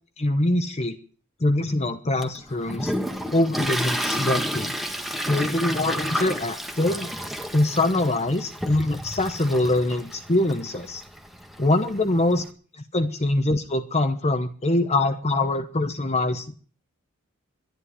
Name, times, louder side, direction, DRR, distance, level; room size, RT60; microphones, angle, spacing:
voice 1, 0.2-1.0 1.4-2.9 3.3-4.8 5.3-7.1 7.5-11.0 11.6-12.4 12.9-16.6, left 2 dB, 30° left, 8 dB, 1.0 m, -23 dB
Toilet flush, 2.2-12.4, equal, ahead, 1.6 m, -31 dB
12.0 x 11.0 x 9.8 m, 0.43 s
head